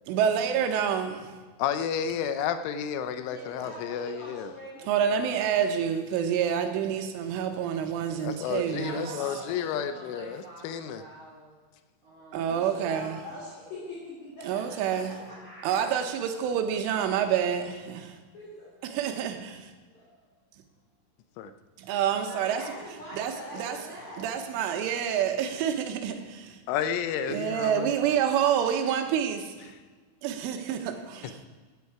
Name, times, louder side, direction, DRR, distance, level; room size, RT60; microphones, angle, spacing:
voice 1, 0.1-1.3 4.9-9.1 12.3-13.2 14.5-15.2 15.6-18.2 18.8-19.7 21.8-22.6 23.1-23.8 24.2-26.6 27.3-29.7 30.2-31.5, right 8 dB, 85° right, 3.5 m, -28 dB
voice 2, 1.6-4.5 8.1-11.0 21.4-21.5 26.7-27.9, left 8 dB, 85° left, 3.2 m, -31 dB
voice 3, 3.2-5.7 8.4-9.6 9.9-10.1 12.3-16.0 18.3-18.7 19.9-20.3 22.1-24.3 27.7-27.8, left 1 dB, 40° left, 4.1 m, -44 dB
voice 4, 8.6-11.5 12.0-12.5 31.1-31.5, right 1 dB, 65° right, 1.6 m, -46 dB
16.0 x 9.5 x 4.8 m
omnidirectional pair, 5.5 m